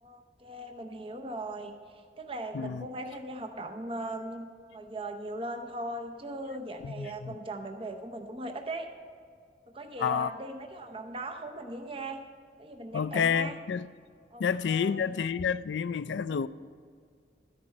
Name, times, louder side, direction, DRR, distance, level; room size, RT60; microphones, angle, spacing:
voice 1, 0.0-1.8 2.2-8.9 9.7-12.2 12.6-13.6 14.3-15.1 16.3-16.5, right 1 dB, 30° right, 0.7 m, -39 dB
voice 2, 2.5-2.9 6.8-7.4 10.0-10.3 12.9-13.9 14.4-16.5, left 7 dB, 85° left, 0.4 m, -29 dB
13.5 x 10.0 x 4.4 m
head